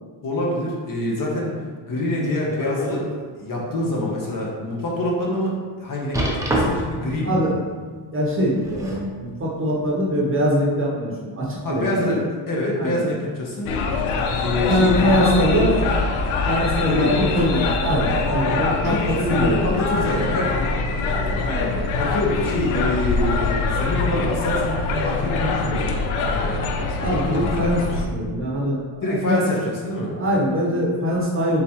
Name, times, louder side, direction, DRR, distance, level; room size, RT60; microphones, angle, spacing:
voice 1, 0.2-1.5 1.9-3.0 3.4-7.4 11.6-13.7 14.4-15.6 16.9-17.2 18.9-21.4 21.9-26.0 26.3-26.6 29.0-30.1, left 1 dB, 40° left, -4 dB, 0.9 m, -25 dB
sound 1, 2.2-3.1 3.6-3.7 4.3-4.4 6.1-7.0 8.4-9.1 10.1-10.2, right 1 dB, 5° right, 0.4 m, -26 dB
voice 2, 7.2-7.5 8.1-12.1 12.8-13.1 14.7-15.8 16.5-19.9 21.4-21.8 27.0-29.4 30.1-31.6, equal, 25° right, -4 dB, 0.8 m, -23 dB
sound 2, 13.7-28.1, left 3 dB, 75° left, 0.6 m, -24 dB
4.0 x 3.5 x 2.9 m, 1.5 s
cardioid pair, 125°, 49 cm